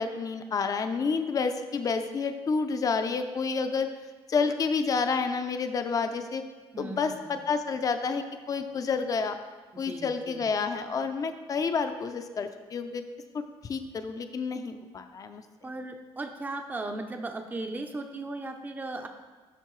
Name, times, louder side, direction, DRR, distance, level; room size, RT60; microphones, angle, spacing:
voice 1, 0.0-3.9 4.3-6.4 6.8-9.4 9.8-13.0 13.6-15.4, left 5 dB, 35° left, 8 dB, 0.5 m, -29 dB
voice 2, 6.7-7.4 9.7-10.4 15.6-19.1, right 2 dB, 15° right, 5 dB, 0.5 m, -37 dB
8.2 x 5.7 x 3.1 m, 1.3 s
cardioid pair, 95°, 10 cm